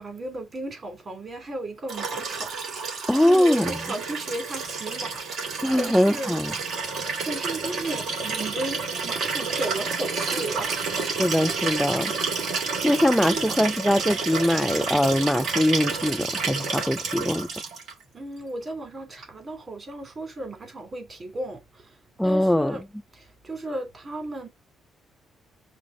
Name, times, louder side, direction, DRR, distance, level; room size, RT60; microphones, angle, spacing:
voice 1, 0.0-6.4 7.2-11.1 12.8-13.0 13.3-13.5 18.1-22.0 22.2-22.8 23.1-24.5, right 1 dB, 35° right, 2.7 m, -35 dB
Liquid, 1.9-17.9 19.2-19.3, right 4 dB, 75° right, 2.9 m, -30 dB
voice 2, 3.1-3.7 5.6-6.5 11.2-12.1 12.5-17.5 22.2-22.7, left 1 dB, 5° left, 0.3 m, -22 dB
5.1 x 3.4 x 5.5 m
cardioid pair, 90°, 0 cm